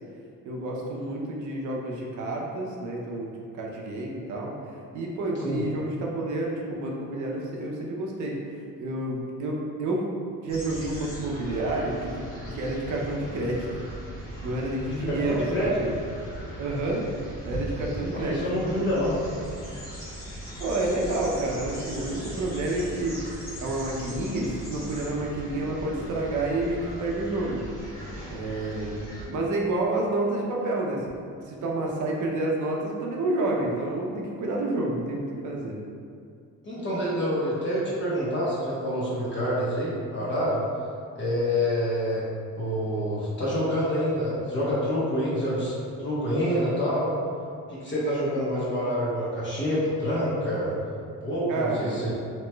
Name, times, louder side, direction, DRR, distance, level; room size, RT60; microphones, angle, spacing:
voice 1, 0.5-4.5 4.9-8.4 8.8-10.1 10.4-12.2 12.5-13.9 14.4-15.9 16.6-17.1 17.4-18.4 20.6-23.2 23.6-27.6 28.3-35.8 51.5-52.0, right 2 dB, 60° right, -2 dB, 0.6 m, -29 dB
sound 1, 10.5-29.2, right 1 dB, 65° left, 1.2 m, -39 dB
voice 2, 14.9-15.8 18.1-19.1 36.6-40.6 41.1-42.3 42.5-45.7 46.0-47.1 47.7-50.7 51.2-52.1, equal, 35° left, -8 dB, 1.1 m, -27 dB
3.0 x 2.9 x 2.2 m, 2.3 s
cardioid pair, 100°, 33 cm